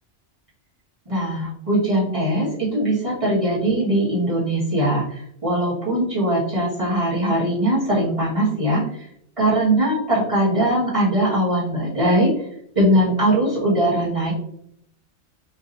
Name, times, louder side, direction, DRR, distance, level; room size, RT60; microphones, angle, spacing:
voice 1, 1.1-9.1 9.4-12.3 12.8-14.3, right 1 dB, 30° right, -10 dB, 1.8 m, -21 dB
5.2 x 2.8 x 2.7 m, 0.70 s
omnidirectional pair, 1.2 m